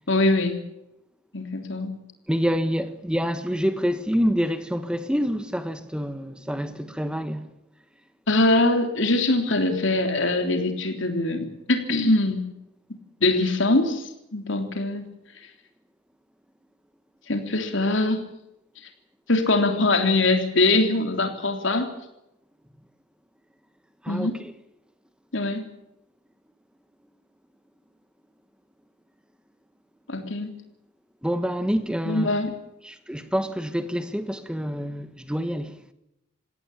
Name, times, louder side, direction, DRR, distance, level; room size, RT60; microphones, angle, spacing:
voice 1, 0.1-0.6 1.3-2.0 8.3-12.4 13.2-15.1 17.3-18.2 19.3-21.9 24.1-24.4 25.3-25.6 30.1-30.5 32.1-32.5, left 2 dB, 65° left, 3.5 m, -22 dB
voice 2, 2.3-7.5 24.0-24.3 31.2-32.3 32.8-35.7, equal, 5° right, 1.4 m, -27 dB
20.0 x 17.0 x 8.6 m
head